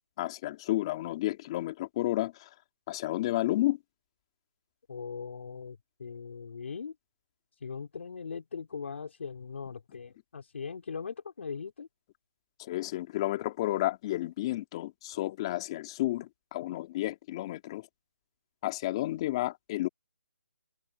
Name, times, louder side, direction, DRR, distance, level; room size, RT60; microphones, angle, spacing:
voice 1, 0.2-2.5 2.9-3.8 12.6-17.9 18.6-19.9, left 16 dB, 20° left, 3.2 m, -31 dB
voice 2, 4.9-6.9 7.6-11.9, left 5 dB, 55° left, 3.6 m, -40 dB
hypercardioid pair, 170°, 8 cm